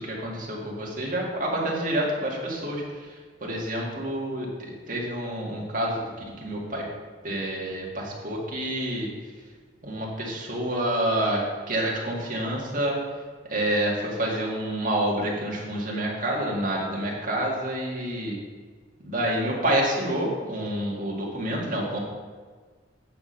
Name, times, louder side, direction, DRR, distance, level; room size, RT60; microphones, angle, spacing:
voice 1, 0.0-2.8 3.4-4.5 4.9-6.0 6.4-6.8 7.2-9.1 9.8-13.0 13.5-18.4 19.0-22.0, right 1 dB, 50° right, -3 dB, 1.9 m, -28 dB
8.8 x 4.3 x 6.3 m, 1.5 s
head